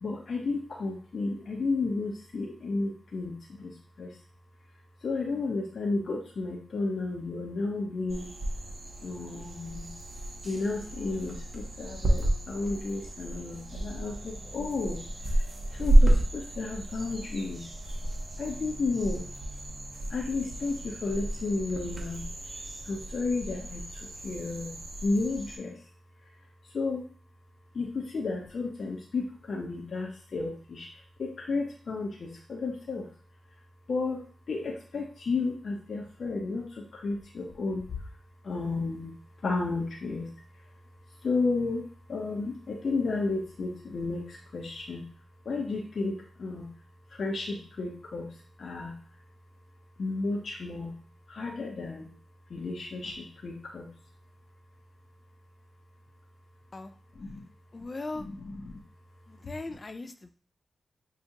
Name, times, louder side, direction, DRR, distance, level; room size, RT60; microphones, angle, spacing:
voice 1, 0.0-4.2 5.0-8.4 9.0-10.0 10.4-17.7 18.4-19.3 20.1-22.3 22.8-25.9 26.2-26.4 26.6-27.1 27.7-33.1 33.9-38.2 38.4-45.1 45.4-46.7 47.1-49.2 50.0-51.0 51.3-52.1 52.5-53.9 57.1-57.4 58.1-58.8, left 3 dB, 65° left, -1 dB, 0.7 m, -33 dB
sound 1, 8.1-25.6, right 1 dB, 45° right, 1.1 m, -30 dB
voice 2, 57.7-58.3 59.3-60.3, left 3 dB, 40° left, 9 dB, 0.4 m, -39 dB
5.8 x 2.4 x 2.7 m, 0.42 s
cardioid pair, 60°, 0 cm